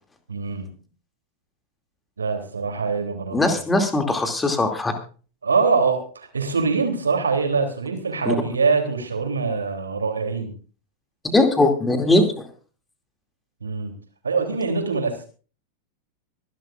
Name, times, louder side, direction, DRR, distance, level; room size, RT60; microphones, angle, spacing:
voice 1, 0.3-0.7 2.2-3.4 5.4-10.5 13.6-13.9 14.2-15.3, right 4 dB, 75° right, 5 dB, 3.2 m, -23 dB
voice 2, 3.3-4.9 8.3-8.4 11.3-12.4, left 2 dB, 10° left, 5 dB, 2.6 m, -20 dB
24.5 x 11.5 x 2.5 m, 0.38 s
figure-of-eight pair, 90°, 0 cm